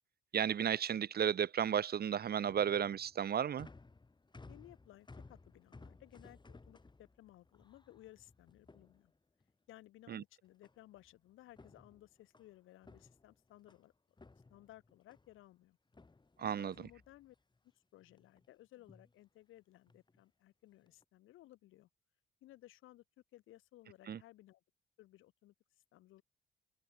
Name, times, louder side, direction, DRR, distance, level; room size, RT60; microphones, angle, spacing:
voice 1, 0.3-3.7 10.1-10.2 16.4-16.7 24.1-24.2, right 8 dB, 50° right, 1.4 m, -33 dB
sound 1, 2.5-9.5 10.6-11.1 11.4-13.9 14.2-15.4 15.9-17.6 18.0-18.5 18.8-19.1 19.9-20.2 20.7-21.0, left 3 dB, 20° left, 7.5 m, -60 dB
voice 2, 4.5-9.1 9.7-13.9 14.5-15.8 16.4-17.4 17.9-21.9 22.4-23.0 23.3-24.6 25.0-26.2, left 15 dB, 90° left, 6.3 m, -59 dB
cardioid pair, 90°, 20 cm